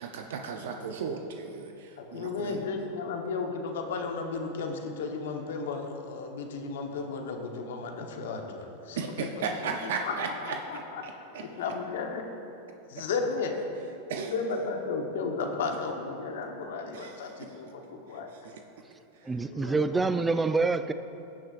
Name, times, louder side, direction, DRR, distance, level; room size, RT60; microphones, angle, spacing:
voice 1, 0.0-2.6 9.0-10.6 11.0-11.4 14.1-14.3 16.9-17.5 18.4-18.5 19.2-19.3, right 5 dB, 75° right, 4 dB, 0.6 m, -35 dB
voice 2, 2.0-11.0 11.4-12.2 12.9-13.6 14.1-18.3 19.5-19.9, left 4 dB, 75° left, 3 dB, 1.1 m, -34 dB
voice 3, 19.2-20.9, right 3 dB, 15° right, 10 dB, 0.4 m, -26 dB
17.0 x 6.2 x 2.5 m, 2.7 s
hypercardioid pair, 115°, 0 cm